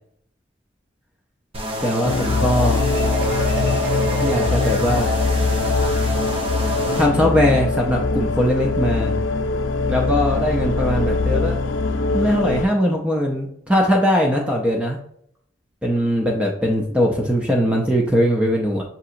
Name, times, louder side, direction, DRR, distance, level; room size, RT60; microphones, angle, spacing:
sound 1, 1.5-7.1, left 1 dB, 30° right, 0.8 m, -27 dB
voice 1, 1.8-2.8 4.2-5.1 6.7-9.2 9.9-11.6 12.1-15.0 15.8-18.8, equal, 5° right, -1 dB, 0.4 m, -20 dB
sound 2, 2.0-12.7, left 3 dB, 90° left, 0.4 m, -22 dB
Marimba xylophone, 2.8-5.5, right 1 dB, 70° right, 1.5 m, -31 dB
6.5 x 2.8 x 2.5 m, 0.69 s
head